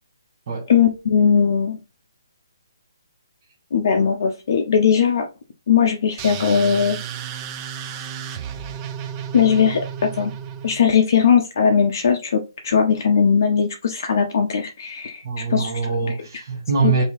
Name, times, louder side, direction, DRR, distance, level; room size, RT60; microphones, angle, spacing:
voice 1, 0.7-1.8 3.7-5.3 5.7-7.0 9.3-10.3 10.6-15.2 15.5-15.7 16.8-17.0, left 7 dB, 50° left, 0.5 m, -19 dB
sound 1, 6.2-10.9, right 8 dB, 20° right, 0.3 m, -33 dB
voice 2, 15.2-17.0, right 5 dB, 35° right, 0.9 m, -23 dB
4.5 x 2.7 x 3.0 m
hypercardioid pair, 165°, 2 cm